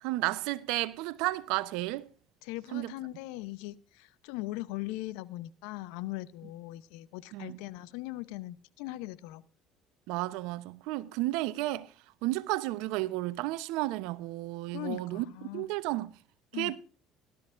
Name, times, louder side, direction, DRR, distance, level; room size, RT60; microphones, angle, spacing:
voice 1, 0.0-2.1 2.7-2.9 7.3-7.6 10.1-11.9 12.2-15.2 15.5-16.2 16.5-16.8, right 18 dB, 80° right, 0.8 m, -32 dB
voice 2, 2.4-9.4 14.7-15.7 16.5-16.7, left 18 dB, 80° left, 0.8 m, -40 dB
18.0 x 12.5 x 2.6 m
supercardioid pair, 85°, 0 cm